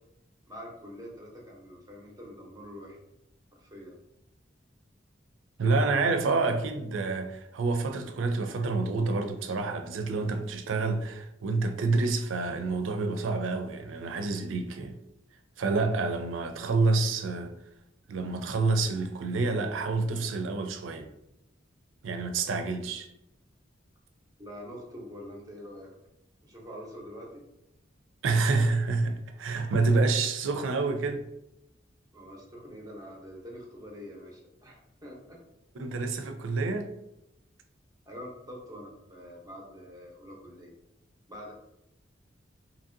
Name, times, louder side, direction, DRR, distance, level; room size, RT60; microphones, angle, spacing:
voice 1, 0.5-3.0 3.5-4.0 16.8-17.0 24.4-25.9 26.4-27.4 32.1-35.4 38.1-40.7 41.3-41.5, equal, 20° right, 0.7 m, -45 dB
voice 2, 5.6-14.9 15.6-17.5 18.1-21.1 22.0-23.1 28.2-31.2 35.8-36.9, right 3 dB, 85° right, 0.4 m, -28 dB
2.8 x 2.6 x 2.5 m
head